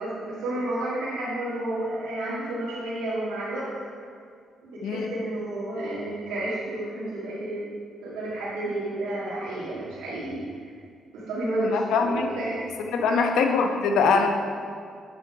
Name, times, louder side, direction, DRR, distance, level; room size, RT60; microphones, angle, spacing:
voice 1, 0.0-3.7 4.6-7.7 8.0-10.6 11.1-12.6 13.0-13.3, right 1 dB, 85° right, -9 dB, 1.8 m, -31 dB
voice 2, 4.8-5.1 11.6-12.3 12.9-14.3, left 5 dB, 80° left, 4 dB, 0.8 m, -23 dB
8.0 x 6.4 x 4.7 m, 2.2 s
cardioid pair, 90°, 0 cm